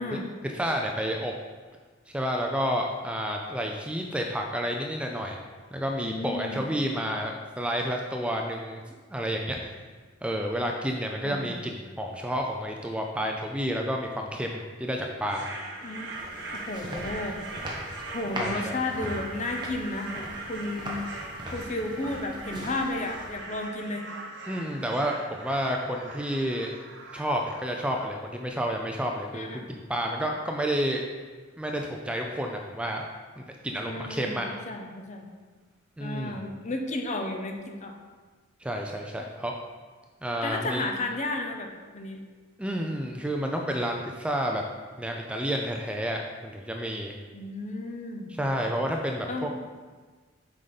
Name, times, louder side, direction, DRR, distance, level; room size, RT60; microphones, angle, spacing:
voice 1, 0.4-1.3 2.1-5.4 5.7-8.8 9.1-9.7 10.2-15.5 18.4-18.8 24.5-26.7 27.1-31.0 31.6-33.0 33.4-34.5 36.0-36.3 38.6-39.5 40.2-40.8 42.6-44.6 45.0-47.2 48.4-49.5, equal, 5° right, 1 dB, 0.4 m, -30 dB
voice 2, 6.0-6.6 11.2-11.7 15.8-16.2 16.5-17.4 18.1-21.0 21.5-24.1 29.3-29.7 33.8-35.3 36.0-37.9 40.4-42.2 47.3-49.5, left 2 dB, 40° left, 4 dB, 0.8 m, -33 dB
sound 1, 15.3-28.0, right 2 dB, 60° right, 1.2 m, -41 dB
sound 2, 15.8-23.6, equal, 25° right, 1.2 m, -40 dB
7.5 x 5.0 x 4.0 m, 1.4 s
head